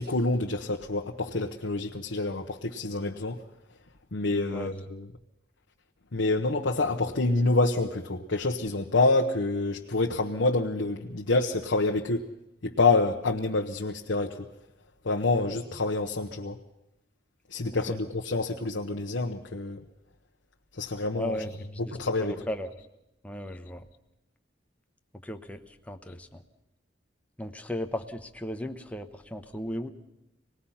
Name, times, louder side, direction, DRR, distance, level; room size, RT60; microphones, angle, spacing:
voice 1, 0.0-3.4 4.1-5.1 6.1-12.2 12.6-14.5 15.0-16.6 17.5-19.8 20.7-21.4 21.8-22.3, left 3 dB, 80° left, 2 dB, 1.0 m, -27 dB
voice 2, 21.1-21.6 21.8-22.7 23.2-23.8 25.2-25.6 25.9-26.4 27.4-29.9, left 1 dB, 5° left, 6 dB, 1.0 m, -36 dB
25.5 x 19.0 x 5.7 m, 0.90 s
head